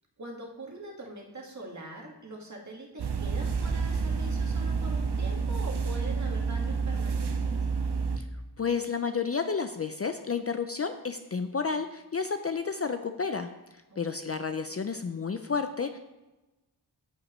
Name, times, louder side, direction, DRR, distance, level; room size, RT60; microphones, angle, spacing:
voice 1, 0.2-7.7 13.9-14.0, right 1 dB, 40° right, -1 dB, 1.8 m, -43 dB
sound 1, 3.0-8.2, right 5 dB, 70° right, 0.8 m, -29 dB
voice 2, 8.6-13.5 14.0-16.0, left 5 dB, 35° left, 8 dB, 0.4 m, -31 dB
14.5 x 5.1 x 3.1 m, 1.1 s
wide cardioid pair, 115°, 42 cm